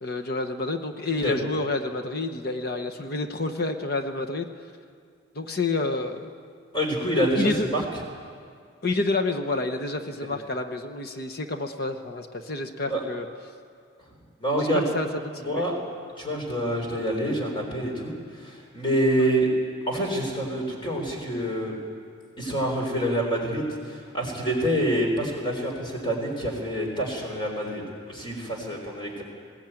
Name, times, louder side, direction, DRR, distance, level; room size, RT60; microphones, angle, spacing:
voice 1, 0.0-4.5 5.3-6.3 7.4-7.8 8.8-13.3 14.6-15.4 19.2-19.3 28.7-28.8, left 2 dB, 50° left, 5 dB, 1.0 m, -29 dB
voice 2, 6.7-7.8 12.8-13.0 14.4-14.8 15.4-15.7 16.2-19.5 19.9-21.8 22.4-29.2, right 1 dB, 25° left, 0 dB, 4.1 m, -27 dB
21.0 x 16.5 x 9.1 m, 2.2 s
head